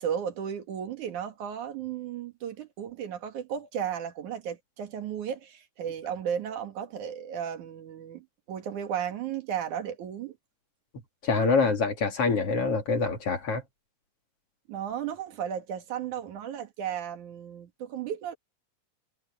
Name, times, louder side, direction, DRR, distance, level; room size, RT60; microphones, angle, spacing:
voice 1, 0.0-10.4 14.7-18.3, right 8 dB, 75° right, 3.2 m, -34 dB
voice 2, 11.2-13.6, left 4 dB, 50° left, 3.3 m, -25 dB
omnidirectional pair, 3.5 m